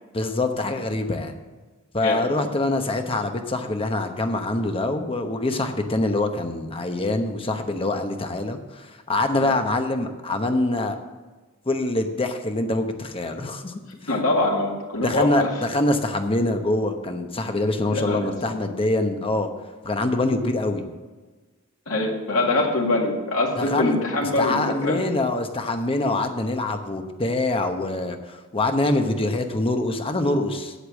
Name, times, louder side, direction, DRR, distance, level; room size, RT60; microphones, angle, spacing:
voice 1, 0.1-1.3 1.9-11.0 11.7-13.7 15.0-19.5 19.8-20.9 23.6-24.0 24.2-30.7, left 2 dB, 25° left, 6 dB, 0.9 m, -24 dB
voice 2, 14.1-15.5 17.9-18.3 21.9-25.0, left 2 dB, 80° left, -1 dB, 2.1 m, -23 dB
8.3 x 8.2 x 7.2 m, 1.3 s
head